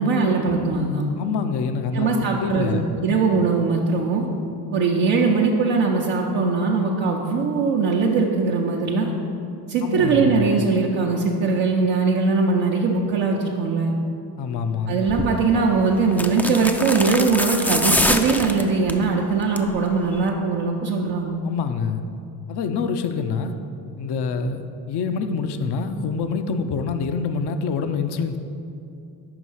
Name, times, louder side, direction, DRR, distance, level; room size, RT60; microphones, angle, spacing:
voice 1, 0.0-1.1 1.9-4.3 4.7-9.1 9.7-13.9 14.9-21.4, right 4 dB, 75° right, -2 dB, 0.7 m, -21 dB
voice 2, 1.2-2.9 9.8-10.5 14.4-15.0 21.4-22.0 22.5-23.5 24.0-24.6 24.9-28.4, left 5 dB, 60° left, 8 dB, 0.6 m, -26 dB
sound 1, 15.1-15.3 16.1-19.0 19.4-19.8 20.0-20.1, left 1 dB, 5° left, 0.3 m, -24 dB
5.3 x 4.8 x 5.5 m, 2.6 s
supercardioid pair, 45°, 46 cm